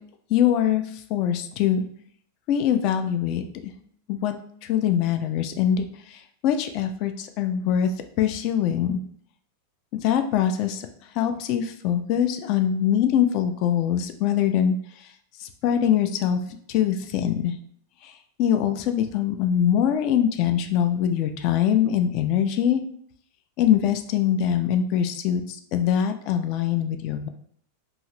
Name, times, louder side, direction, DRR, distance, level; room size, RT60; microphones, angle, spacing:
voice 1, 0.3-1.8 2.5-3.4 4.1-4.3 4.6-7.9 8.2-9.0 9.9-10.9 11.1-14.8 15.4-17.5 18.0-18.1 18.4-22.8 23.6-27.3, left 9 dB, 40° left, 7 dB, 0.3 m, -23 dB
2.7 x 2.5 x 3.1 m, 0.62 s
figure-of-eight pair, 90°, 0 cm